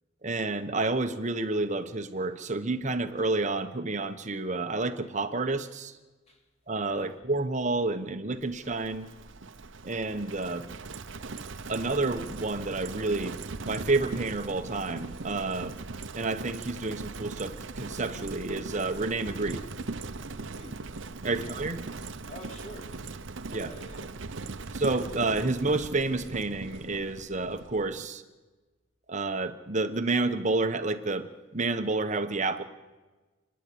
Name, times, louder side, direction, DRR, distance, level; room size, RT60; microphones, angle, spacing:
voice 1, 0.2-5.9 6.7-9.1 9.8-10.6 11.7-13.3 13.6-15.8 16.2-19.6 21.2-21.8 23.5-23.7 24.7-28.2 29.1-32.6, right 3 dB, 35° right, 1.1 m, -29 dB
Livestock farm animals working animals, 8.4-28.1, right 3 dB, 65° right, 0.8 m, -40 dB
voice 2, 20.4-20.8 21.3-21.6 22.3-23.0 23.5-24.1, equal, 30° left, 2.8 m, -47 dB
30.0 x 10.5 x 8.7 m
head